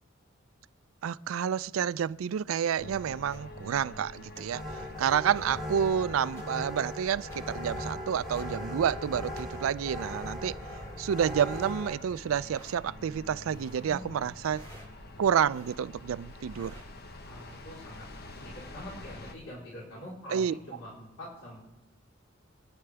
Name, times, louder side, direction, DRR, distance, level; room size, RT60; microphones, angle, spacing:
voice 1, 1.0-10.6 11.0-14.6 15.2-16.8 20.3-20.5, right 8 dB, 85° right, 0.4 m, -29 dB
sound 1, 2.8-19.3, left 2 dB, 50° left, 1.1 m, -47 dB
Footsteps Mountain Boots Wet Sand Sequence Mono, 3.3-3.4 4.3-4.4 5.3-5.4 6.4-6.5 7.3-7.4 8.3-8.5 9.3-9.4 11.3-11.8 12.4-12.8 13.4-13.8 14.5-14.9 15.4-15.8 16.4-16.9, right 1 dB, 15° left, 5.2 m, -53 dB
sound 2, 4.5-11.9, equal, ahead, 3.2 m, -39 dB
voice 2, 13.8-14.1 14.5-14.6 17.2-18.1 18.3-21.6, left 1 dB, 75° left, 4.0 m, -45 dB
25.0 x 9.6 x 3.4 m
head